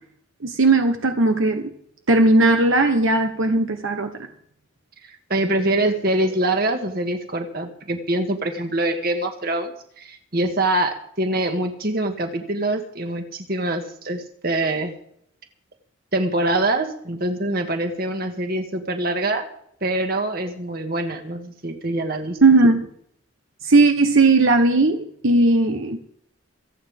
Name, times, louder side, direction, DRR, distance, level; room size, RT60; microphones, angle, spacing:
voice 1, 0.4-1.7 2.1-4.1 22.4-22.9 23.6-26.0, right 2 dB, 70° right, 6 dB, 1.3 m, -17 dB
voice 2, 5.3-14.9 16.1-19.5 19.8-22.4, right 1 dB, 45° right, 5 dB, 2.0 m, -24 dB
27.0 x 9.2 x 3.7 m, 0.68 s
head